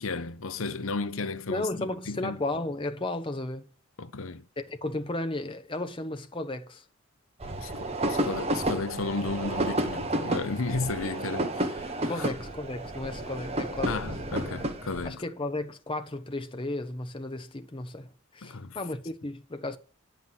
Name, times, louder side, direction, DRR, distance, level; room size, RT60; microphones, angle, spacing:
voice 1, 0.0-2.4 4.0-4.5 7.6-12.3 13.9-15.2 18.4-18.8, left 3 dB, 65° left, 0.7 m, -34 dB
voice 2, 1.5-3.7 4.6-6.8 12.1-14.0 15.0-19.8, left 2 dB, 20° left, 0.7 m, -34 dB
sound 1, 7.4-15.1, right 1 dB, 30° right, 1.3 m, -31 dB
9.3 x 5.7 x 7.6 m
head